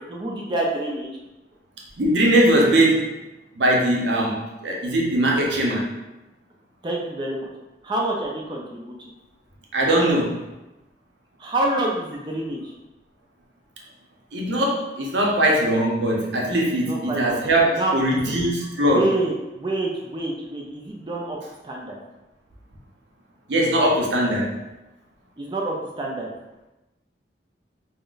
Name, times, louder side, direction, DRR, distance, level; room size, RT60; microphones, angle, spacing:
voice 1, 0.1-1.1 6.8-7.5 7.8-9.0 11.4-12.7 16.7-17.4 17.7-18.3 18.8-21.4 21.6-22.0 25.4-26.3, right 2 dB, 25° right, -1 dB, 0.4 m, -27 dB
voice 2, 2.0-3.2 3.5-5.9 9.7-10.4 14.3-19.0 23.5-24.5, right 1 dB, 90° right, -2 dB, 0.7 m, -20 dB
2.4 x 2.1 x 3.7 m, 1.0 s
head